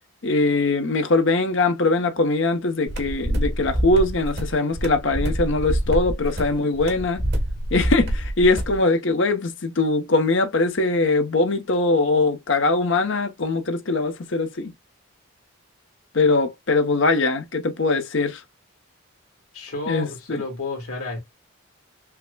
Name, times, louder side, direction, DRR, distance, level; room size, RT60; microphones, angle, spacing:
voice 1, 0.2-7.3 7.7-14.7 16.1-18.4 19.9-20.4, left 3 dB, 55° left, 0.8 m, -21 dB
sound 1, 2.9-8.8, equal, 50° right, 1.5 m, -26 dB
voice 2, 19.5-21.2, left 2 dB, 90° left, 1.9 m, -31 dB
5.7 x 2.1 x 2.2 m
head